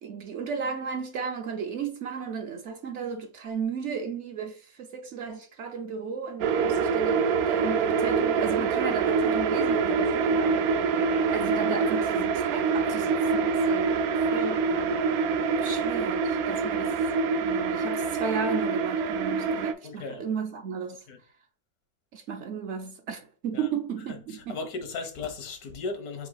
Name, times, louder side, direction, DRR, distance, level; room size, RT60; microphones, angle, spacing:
voice 1, 0.0-10.7 11.3-14.6 15.6-17.0 17.4-21.0 22.1-24.6, right 6 dB, 65° right, 0.8 m, -34 dB
sound 1, 6.4-19.7, right 5 dB, 85° right, 1.1 m, -25 dB
voice 2, 19.8-20.2 21.1-21.2 23.5-23.7 24.1-26.3, left 4 dB, 85° left, 1.4 m, -36 dB
4.8 x 2.7 x 4.0 m
omnidirectional pair, 1.5 m